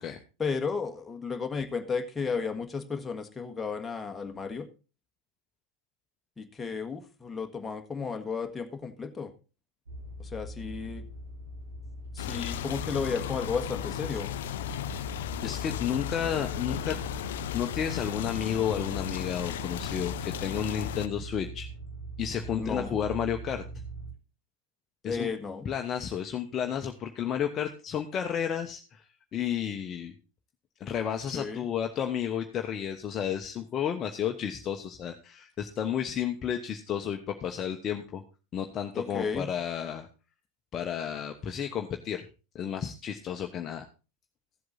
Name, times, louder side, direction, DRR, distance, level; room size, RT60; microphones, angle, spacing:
voice 1, 0.4-4.7 6.4-9.3 10.2-11.0 12.1-14.3 22.6-23.0 25.0-25.7 31.3-31.6 38.9-39.5, left 5 dB, 15° left, 5 dB, 1.6 m, -33 dB
sound 1, 9.9-24.1, right 2 dB, 80° right, 3.6 m, -42 dB
sound 2, 12.2-21.1, left 12 dB, 65° left, 0.6 m, -35 dB
voice 2, 15.4-17.0 17.5-21.7 22.2-23.6 25.0-25.3 25.6-29.0 29.3-30.1 30.8-38.2 38.5-40.1 40.7-42.3 42.5-43.9, left 9 dB, 35° left, 4 dB, 1.1 m, -32 dB
14.5 x 7.8 x 4.0 m, 0.31 s
figure-of-eight pair, 85°, 0 cm